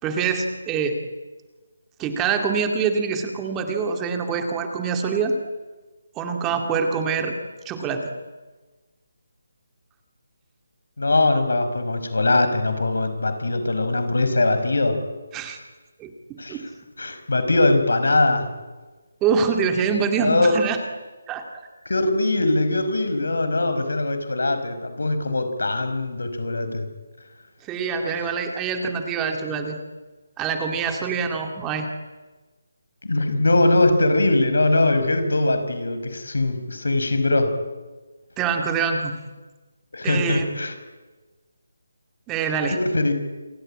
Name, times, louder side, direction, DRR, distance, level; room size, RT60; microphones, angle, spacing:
voice 1, 0.0-1.0 2.0-5.4 6.2-7.3 7.7-8.1 15.3-15.6 16.0-16.6 19.2-20.8 21.3-21.4 27.6-29.8 30.4-31.9 38.4-39.1 40.0-40.5 42.3-42.8, right 5 dB, 10° right, 5 dB, 2.1 m, -25 dB
voice 2, 11.0-15.0 16.4-16.6 17.0-18.5 20.2-20.5 21.8-26.9 33.0-37.6 39.9-40.7 42.7-43.1, left 2 dB, 85° left, 9 dB, 5.2 m, -21 dB
27.5 x 24.0 x 8.7 m, 1.3 s
hypercardioid pair, 170°, 0 cm